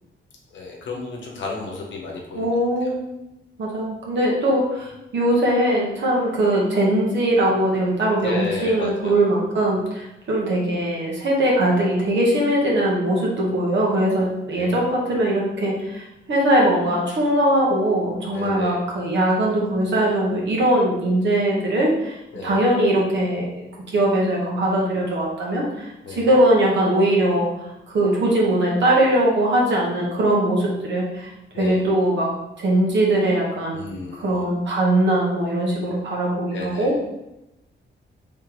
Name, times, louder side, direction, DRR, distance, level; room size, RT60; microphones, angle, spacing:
voice 1, 0.5-2.9 8.2-9.3 14.5-14.8 18.3-18.8 22.3-22.6 26.0-26.3 31.5-31.9 33.7-34.4 36.5-36.9, left 3 dB, 70° left, -1 dB, 0.9 m, -33 dB
voice 2, 2.3-3.3 3.6-23.6 23.9-27.5 27.9-31.3 31.6-32.3 32.6-33.8 34.1-36.9, right 1 dB, 65° right, -3 dB, 1.2 m, -21 dB
3.7 x 3.2 x 3.0 m, 0.92 s
cardioid pair, 120°, 20 cm